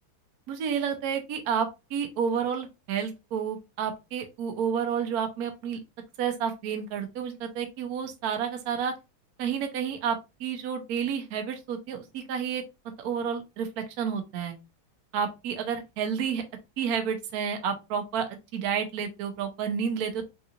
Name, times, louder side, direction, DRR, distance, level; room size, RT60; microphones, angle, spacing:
voice 1, 0.5-5.8 6.2-8.9 9.4-12.6 13.0-14.6 15.1-16.4 16.8-18.3 18.5-20.3, right 7 dB, 70° right, 6 dB, 0.9 m, -30 dB
3.6 x 2.8 x 2.4 m, 0.25 s
omnidirectional pair, 2.2 m